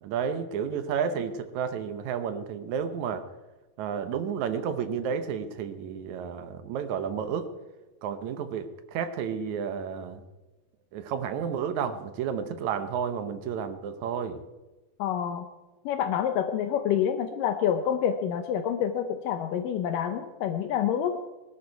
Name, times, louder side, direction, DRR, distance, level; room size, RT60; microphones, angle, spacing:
voice 1, 0.0-3.2 3.8-7.5 8.0-10.2 10.9-14.4, right 7 dB, 70° right, 9 dB, 1.8 m, -31 dB
voice 2, 15.0-15.5 15.9-21.2, left 9 dB, 75° left, 8 dB, 2.1 m, -27 dB
20.0 x 12.5 x 4.6 m, 1.1 s
omnidirectional pair, 4.5 m